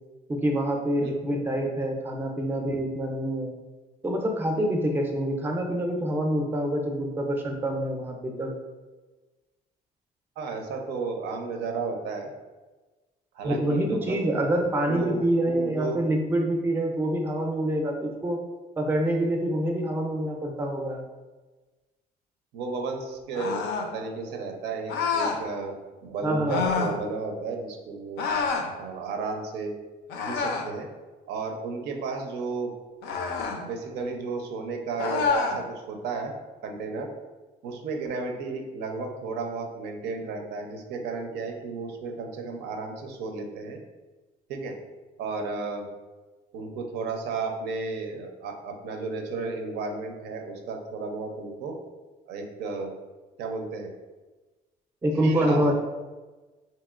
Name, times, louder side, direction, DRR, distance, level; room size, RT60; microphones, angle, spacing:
voice 1, 0.3-3.5 4.0-8.5 13.4-18.4 18.8-21.0 26.2-26.6 55.0-55.7, right 1 dB, 10° right, 3 dB, 0.4 m, -26 dB
voice 2, 1.0-1.4 10.4-12.3 13.3-14.4 14.9-16.0 22.5-23.6 23.9-28.3 28.8-29.7 30.3-30.9 31.3-32.7 33.6-36.3 36.6-37.1 37.6-43.8 44.5-44.7 45.2-45.9 46.5-51.8 52.3-52.9 53.4-53.9 55.2-55.7, right 4 dB, 80° right, 3 dB, 0.5 m, -33 dB
sound 1, 23.3-23.9 24.9-25.4 26.5-27.0 28.2-28.7 30.1-30.7 33.0-33.6 35.0-35.6, left 5 dB, 85° left, 0.4 m, -27 dB
2.9 x 2.8 x 2.3 m, 1.2 s
cardioid pair, 110°, 17 cm